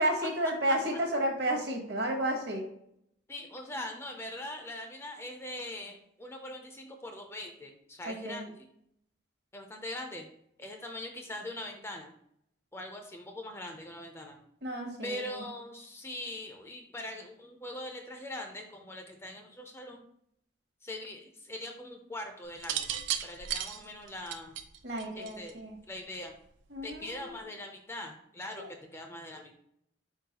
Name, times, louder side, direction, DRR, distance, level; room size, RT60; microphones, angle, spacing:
voice 1, 0.0-2.7 8.0-8.5 14.6-15.4 24.8-25.8 26.7-27.4 28.6-28.7, right 1 dB, 55° right, 2 dB, 1.0 m, -32 dB
voice 2, 3.3-8.7 9.5-10.3 10.6-12.1 12.7-14.4 15.0-20.0 20.8-24.6 25.1-25.6 25.9-26.3 26.8-29.6, left 1 dB, 15° left, 3 dB, 0.4 m, -42 dB
sound 1, 22.6-25.7 26.8-27.2, right 10 dB, 80° right, 0.4 m, -35 dB
4.5 x 3.8 x 2.8 m, 0.71 s
head